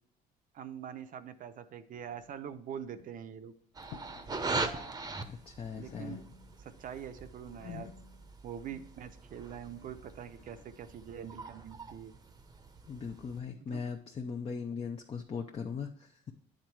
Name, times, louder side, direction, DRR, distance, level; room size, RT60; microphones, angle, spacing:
voice 1, 0.5-3.5 5.7-6.2 6.6-7.9 8.4-12.1 13.7-13.8, right 8 dB, 55° right, 10 dB, 0.7 m, -44 dB
sound 1, 1.9-2.6 2.9-3.3 3.8-4.4 4.6-5.5 5.7-6.7 7.0-10.7, left 10 dB, 90° left, 0.6 m, -52 dB
sound 2, 3.7-13.4, right 3 dB, 20° right, 0.8 m, -41 dB
voice 2, 5.3-6.2 12.9-16.3, left 5 dB, 35° left, 3 dB, 0.6 m, -39 dB
8.8 x 3.8 x 4.6 m, 0.63 s
cardioid pair, 110°, 17 cm